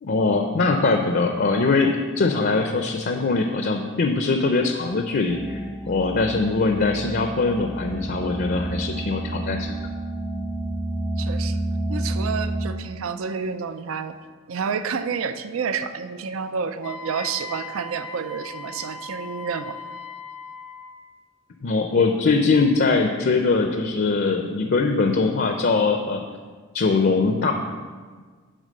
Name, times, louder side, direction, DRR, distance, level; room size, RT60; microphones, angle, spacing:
voice 1, 0.0-5.6 5.9-9.8 21.6-26.2 26.7-27.5, left 3 dB, 50° left, 4 dB, 0.5 m, -22 dB
sound 1, 5.3-12.7, right 1 dB, 5° left, 0.5 m, -29 dB
voice 2, 11.2-11.6 11.9-14.1 14.5-19.8, right 6 dB, 80° right, 10 dB, 0.5 m, -29 dB
Wind instrument woodwind instrument, 16.8-21.0, left 3 dB, 85° left, 0.9 m, -38 dB
10.0 x 3.8 x 6.5 m, 1.5 s
head